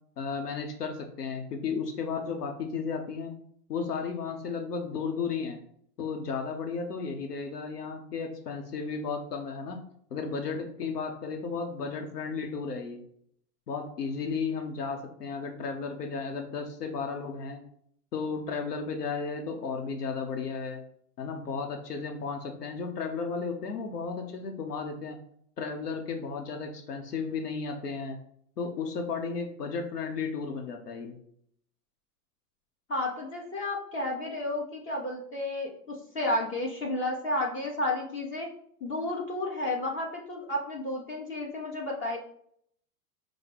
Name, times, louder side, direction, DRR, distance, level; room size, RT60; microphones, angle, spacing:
voice 1, 0.2-3.4 3.7-5.6 6.0-9.8 10.1-13.0 13.7-17.6 18.1-20.8 21.2-25.2 25.6-28.2 28.6-31.2, left 5 dB, 90° left, 4 dB, 0.8 m, -34 dB
voice 2, 32.9-38.5 38.8-42.2, left 1 dB, 25° left, -1 dB, 1.0 m, -32 dB
4.9 x 2.1 x 4.7 m, 0.66 s
hypercardioid pair, 100°, 45 cm